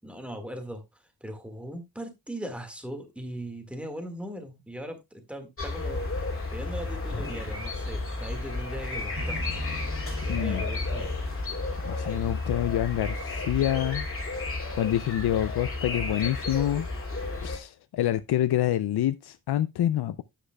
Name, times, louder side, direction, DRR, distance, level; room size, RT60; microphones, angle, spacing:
voice 1, 0.0-9.4 10.2-11.1, right 1 dB, 5° right, 1.7 m, -39 dB
sound 1, 5.6-17.6, left 3 dB, 35° left, 2.4 m, -32 dB
sound 2, 9.1-15.3, right 2 dB, 50° right, 2.5 m, -44 dB
voice 2, 10.3-10.6 11.8-14.1 14.8-16.9 17.4-20.2, left 12 dB, 85° left, 0.5 m, -27 dB
9.7 x 9.0 x 2.2 m
wide cardioid pair, 145°, 38 cm